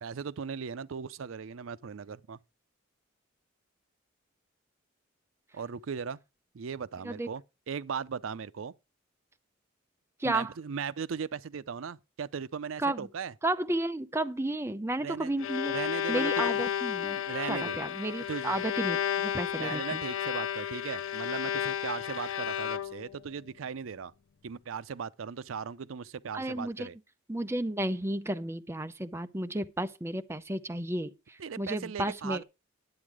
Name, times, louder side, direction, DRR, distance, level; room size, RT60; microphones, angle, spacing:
voice 1, 0.0-2.4 5.5-6.2 6.5-8.7 10.2-13.3 15.0-15.3 15.7-16.6 17.3-17.8 18.3-18.6 19.6-24.1 24.4-27.0 31.4-32.4, right 6 dB, 85° right, 0.5 m, -38 dB
voice 2, 10.2-10.5 12.8-13.1 13.4-15.7 16.1-17.2 17.5-20.0 26.3-26.9 27.3-32.4, right 1 dB, 15° right, 0.6 m, -32 dB
Bowed string instrument, 15.1-23.2, left 9 dB, 85° left, 0.5 m, -32 dB
11.0 x 8.4 x 4.8 m
head